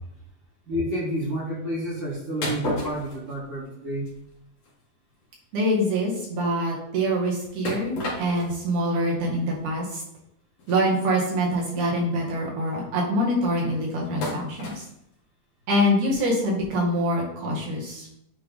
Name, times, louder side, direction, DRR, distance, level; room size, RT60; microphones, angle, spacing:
voice 1, 0.7-4.1, equal, 40° right, -6 dB, 2.4 m, -29 dB
sound 1, 2.4-3.7 4.1-4.3 4.6-4.7 5.2-5.3 5.5-5.7 7.6-8.7 9.3-9.4 10.6-10.8 11.6-11.7 11.9-12.2 14.2-14.9, left 1 dB, 60° left, 2.4 m, -32 dB
voice 2, 5.5-10.0 10.7-14.8 15.7-18.1, equal, 75° right, -3 dB, 3.2 m, -25 dB
9.0 x 3.5 x 3.6 m, 0.78 s
omnidirectional pair, 3.6 m